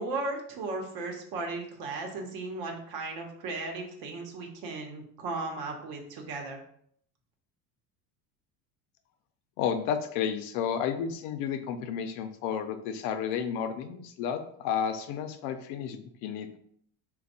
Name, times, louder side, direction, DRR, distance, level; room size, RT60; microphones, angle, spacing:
voice 1, 0.0-6.6, right 3 dB, 70° right, 1 dB, 0.9 m, -36 dB
voice 2, 9.6-16.6, left 8 dB, 85° left, 8 dB, 0.6 m, -32 dB
3.4 x 2.3 x 4.0 m, 0.65 s
cardioid pair, 155°, 38 cm